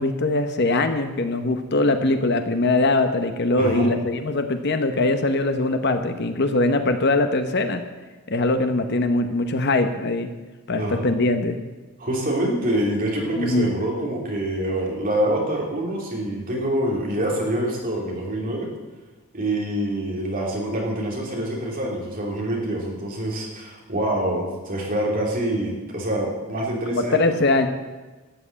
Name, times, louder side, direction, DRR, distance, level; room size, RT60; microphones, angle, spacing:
voice 1, 0.0-7.8 8.3-10.3 10.7-11.6 13.4-13.7 26.9-27.7, left 2 dB, 50° left, 8 dB, 0.9 m, -22 dB
voice 2, 3.6-3.9 10.7-11.1 12.0-18.7 19.3-27.2, right 1 dB, 40° right, -2 dB, 3.2 m, -26 dB
13.0 x 7.9 x 8.6 m, 1.2 s
head